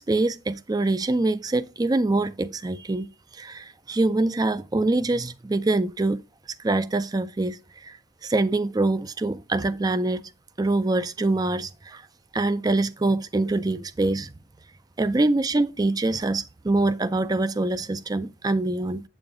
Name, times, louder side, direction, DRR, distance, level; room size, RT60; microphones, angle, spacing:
voice 1, 0.0-3.1 3.3-6.2 6.6-8.0 8.2-10.2 10.6-12.0 12.3-14.3 15.0-19.0, right 2 dB, 20° right, 0.4 m, -24 dB
7.9 x 7.1 x 3.7 m
head